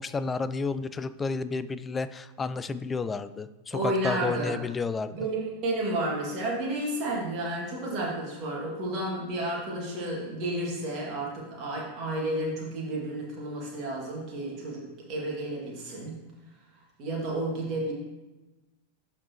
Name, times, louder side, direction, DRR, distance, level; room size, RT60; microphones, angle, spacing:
voice 1, 0.0-5.1, left 4 dB, 15° left, 14 dB, 0.3 m, -31 dB
voice 2, 3.7-4.6 5.1-14.8 15.1-16.2 17.0-17.9, right 1 dB, 35° right, -3 dB, 2.3 m, -31 dB
11.5 x 4.3 x 3.0 m, 1.1 s
figure-of-eight pair, 90°, 0 cm